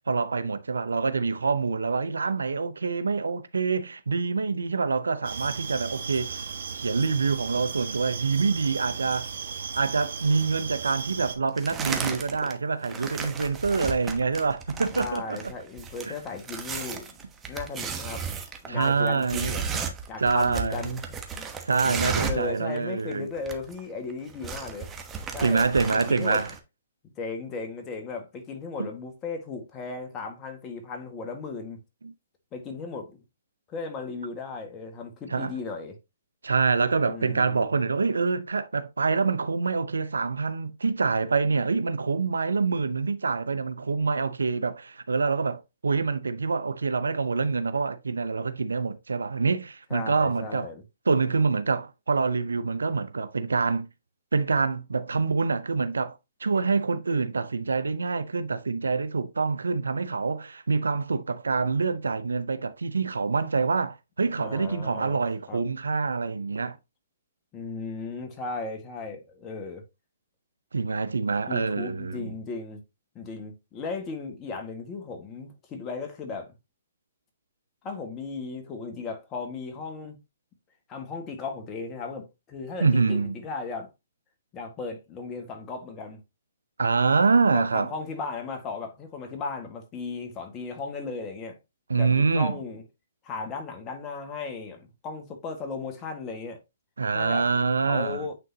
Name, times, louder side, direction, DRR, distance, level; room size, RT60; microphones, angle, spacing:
voice 1, 0.0-6.5 6.7-9.3 9.7-15.5 16.1-16.2 18.7-19.6 20.2-21.0 21.6-23.3 25.4-26.5 28.8-28.9 32.0-32.1 35.3-35.5 36.4-50.7 51.1-53.9 54.3-66.8 70.7-72.3 82.8-83.3 86.8-87.9 91.9-92.5 97.0-98.2, right 4 dB, 90° right, 0.7 m, -26 dB
sound 1, 5.2-11.4, right 6 dB, 70° right, 1.4 m, -36 dB
sound 2, 11.6-12.5 12.8-22.5 22.8-22.9 23.1-23.8 24.1-26.6, right 6 dB, 15° right, 1.1 m, -34 dB
voice 2, 14.9-18.2 18.6-19.6 20.1-21.0 21.4-24.9 25.3-26.4 27.0-31.8 32.5-33.2 33.7-36.0 37.0-37.7 49.9-50.8 64.4-65.2 65.5-65.6 67.5-69.8 71.5-72.8 73.1-76.5 77.8-80.2 80.9-83.9 84.5-86.2 87.5-91.6 91.9-92.8 93.2-96.6 97.1-97.5 97.9-98.3, left 4 dB, 25° left, 1.7 m, -36 dB
9.1 x 3.8 x 2.8 m
hypercardioid pair, 140°, 0 cm